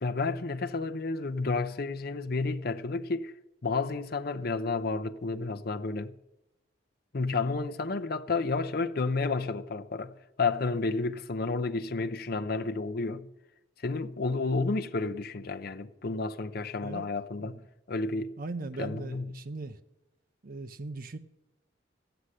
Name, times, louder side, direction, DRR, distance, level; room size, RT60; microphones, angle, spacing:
voice 1, 0.0-3.3 3.6-6.1 7.1-13.3 13.8-17.6 17.9-18.3 18.8-19.3, left 3 dB, 50° left, 0.7 m, -31 dB
voice 2, 18.4-19.8 20.4-21.2, right 3 dB, 45° right, 0.6 m, -39 dB
15.0 x 7.9 x 9.9 m
head